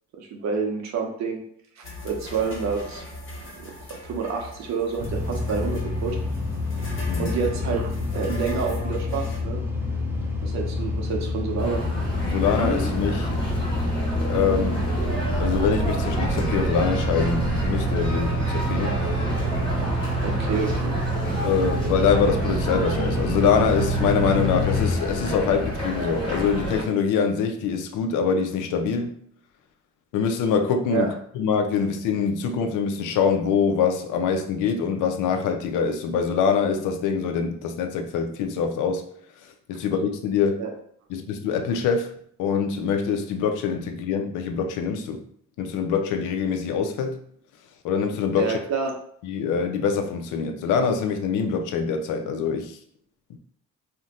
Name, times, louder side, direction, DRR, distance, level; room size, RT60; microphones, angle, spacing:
voice 1, 0.2-1.4 1.8-3.0 3.6-3.8 4.0-6.2 7.2-9.6 10.4-11.8 20.2-21.0 30.9-31.1 40.6-40.7 48.4-48.9, right 5 dB, 65° right, 1 dB, 0.6 m, -28 dB
sound 1, 1.8-9.4, left 1 dB, 40° left, 1.1 m, -38 dB
sound 2, 5.0-24.9, equal, 5° right, 0.6 m, -28 dB
sound 3, 11.6-26.8, equal, 15° left, 1.4 m, -29 dB
voice 2, 12.2-13.4 14.2-14.9 15.4-19.0 21.4-29.1 30.1-39.0 39.7-40.6 41.1-42.1 42.4-45.2 45.6-47.2 47.8-48.6 49.2-52.8 53.3-53.4, left 6 dB, 85° left, 6 dB, 0.5 m, -24 dB
2.5 x 2.1 x 4.0 m, 0.63 s
cardioid pair, 90°, 30 cm